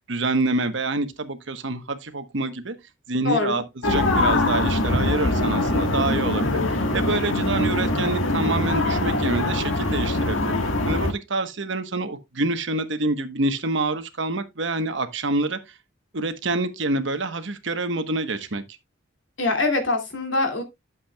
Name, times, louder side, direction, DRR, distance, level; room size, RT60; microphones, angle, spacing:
voice 1, 0.1-2.7 3.1-10.5 10.8-15.8 16.1-18.6, right 2 dB, 70° right, 1.2 m, -27 dB
voice 2, 3.2-3.6 19.4-20.6, left 3 dB, 70° left, 2.4 m, -23 dB
sound 1, 3.8-11.1, left 2 dB, 85° left, 1.5 m, -23 dB
11.5 x 7.4 x 2.3 m
head